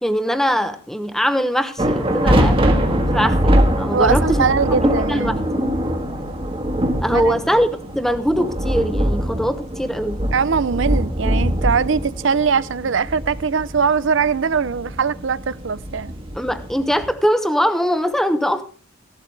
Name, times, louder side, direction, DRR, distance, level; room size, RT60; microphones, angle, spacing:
voice 1, 0.0-5.7 7.0-7.7 7.9-10.2 16.3-18.7, equal, ahead, 1.0 m, -22 dB
sound 1, 1.8-17.1, equal, 25° right, 1.5 m, -22 dB
voice 2, 3.9-5.4 7.1-7.4 10.3-16.1, right 5 dB, 65° right, 0.5 m, -21 dB
15.5 x 12.0 x 3.4 m
head